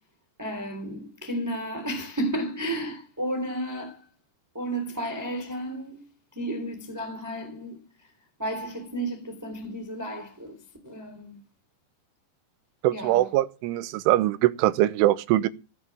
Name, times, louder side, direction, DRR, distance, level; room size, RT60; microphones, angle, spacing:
voice 1, 0.4-4.1 4.5-6.1 6.3-8.1 8.4-11.4 12.9-13.3, right 1 dB, 5° right, 2.6 m, -33 dB
voice 2, 12.8-15.5, right 15 dB, 85° right, 3.4 m, -22 dB
16.5 x 8.1 x 7.4 m
omnidirectional pair, 5.4 m